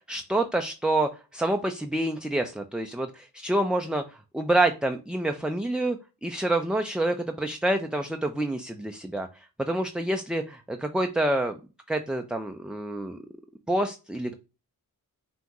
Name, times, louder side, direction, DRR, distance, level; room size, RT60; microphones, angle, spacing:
voice 1, 0.1-11.6 11.9-13.2 13.7-14.3, right 1 dB, ahead, 5 dB, 0.4 m, -27 dB
5.6 x 2.6 x 3.0 m, 0.30 s
cardioid pair, 55°, 41 cm